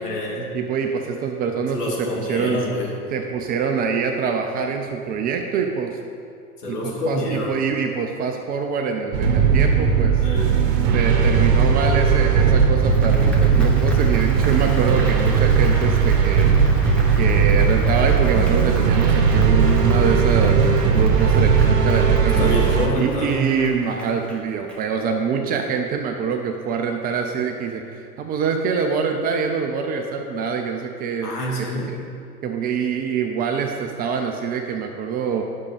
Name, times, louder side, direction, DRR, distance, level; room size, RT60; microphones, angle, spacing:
voice 1, 0.0-0.5 1.7-2.9 6.6-7.6 10.1-10.5 16.7-17.2 22.4-23.6 31.2-31.9, left 1 dB, 75° left, -3 dB, 2.6 m, -27 dB
voice 2, 0.5-2.6 3.1-6.0 6.6-10.2 10.9-16.5 17.2-22.5 23.0-31.4 31.9-32.0 32.4-35.4, right 6 dB, 20° right, 4 dB, 0.4 m, -25 dB
sound 1, 9.1-22.9, right 6 dB, 45° right, 1.4 m, -17 dB
Applause, 12.5-25.3, equal, ahead, 1.4 m, -38 dB
10.5 x 6.4 x 5.1 m, 2.4 s
figure-of-eight pair, 90°, 47 cm